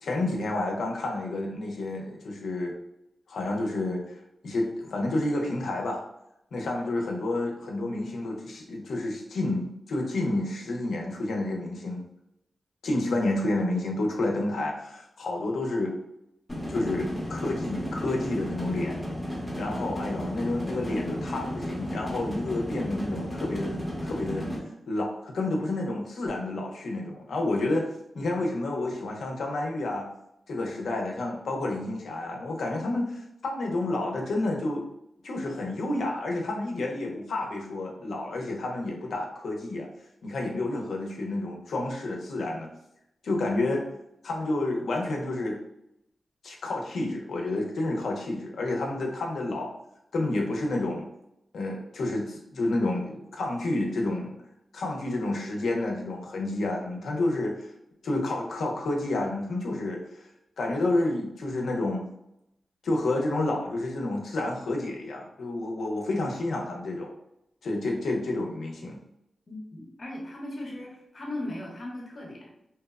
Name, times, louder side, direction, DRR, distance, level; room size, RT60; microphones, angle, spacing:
voice 1, 0.0-2.7 3.3-4.2 4.4-6.1 6.5-12.0 12.8-16.0 16.7-19.0 19.3-24.5 24.9-27.9 28.1-30.1 30.5-34.8 35.2-39.9 40.2-42.7 43.2-43.8 44.2-45.6 46.4-49.8 50.1-51.1 51.5-54.3 54.7-57.7 58.0-60.2 60.6-62.0 62.8-67.1 67.6-69.0, left 2 dB, 90° left, 0 dB, 0.5 m, -30 dB
sound 1, 16.5-24.6, equal, 5° left, 0.8 m, -33 dB
voice 2, 69.5-72.5, left 1 dB, 45° left, -2 dB, 0.7 m, -38 dB
2.9 x 2.0 x 2.3 m, 0.82 s
wide cardioid pair, 130°, 0 cm